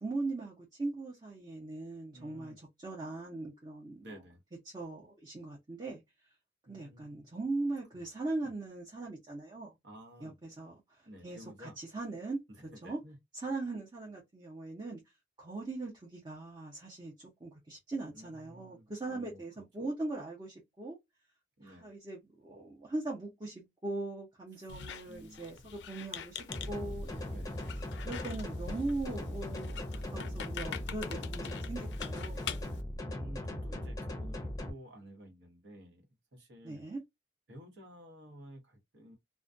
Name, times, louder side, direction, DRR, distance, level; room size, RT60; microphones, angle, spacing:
voice 1, 0.0-2.5 2.8-4.0 4.7-6.0 6.7-9.7 10.2-12.4 12.8-13.0 13.4-15.0 15.4-21.0 21.6-26.4 26.7-27.2 28.0-32.4 36.6-37.0, right 2 dB, 25° right, 0.7 m, -40 dB
voice 2, 2.1-2.6 4.0-4.4 6.6-7.3 7.9-8.1 8.4-8.5 9.8-10.3 11.0-11.8 12.5-13.2 18.1-19.6 21.6-21.9 24.5-24.7 25.1-25.7 27.3-27.6 32.5-32.7 33.0-36.8 37.5-39.2, equal, 80° right, 1.0 m, -52 dB
Squeak, 24.7-32.8, left 7 dB, 75° left, 0.3 m, -45 dB
sound 1, 26.5-34.7, left 1 dB, 20° left, 0.5 m, -39 dB
2.3 x 2.2 x 2.5 m
head